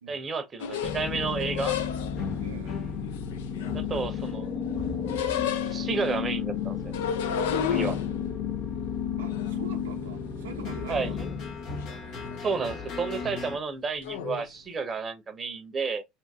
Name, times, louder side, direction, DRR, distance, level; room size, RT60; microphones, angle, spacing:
voice 1, 0.1-1.8 3.7-4.5 5.7-6.9 7.7-8.0 10.9-11.1 12.4-16.0, right 5 dB, 30° right, 0.7 m, -31 dB
sound 1, 0.6-2.3 3.0-4.3 4.6-6.1 6.8-10.5 10.8-11.5 11.8-12.4 12.7-13.0 14.0-14.4, left 8 dB, 75° left, 0.4 m, -33 dB
sound 2, 0.8-13.6, left 7 dB, 60° left, 0.9 m, -33 dB
voice 2, 2.4-2.8 9.2-11.2, right 6 dB, 85° right, 0.6 m, -43 dB
2.7 x 2.6 x 3.4 m
hypercardioid pair, 80°, 0 cm